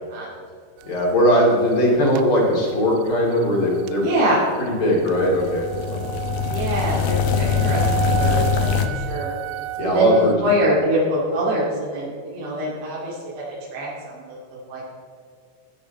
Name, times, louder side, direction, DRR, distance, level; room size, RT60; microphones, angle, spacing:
voice 1, 0.8-4.1 4.6-6.1 6.8-7.0 9.8-10.8, equal, 30° left, -3 dB, 2.9 m, -20 dB
sound 1, 0.8-10.4, right 16 dB, 85° right, 2.7 m, -33 dB
voice 2, 4.0-4.4 6.5-8.7 8.9-9.3 9.8-14.8, right 1 dB, 65° right, -8 dB, 4.9 m, -24 dB
sound 2, 5.0-8.9, left 7 dB, 75° left, 2.2 m, -23 dB
15.0 x 10.0 x 4.2 m, 2.3 s
omnidirectional pair, 5.7 m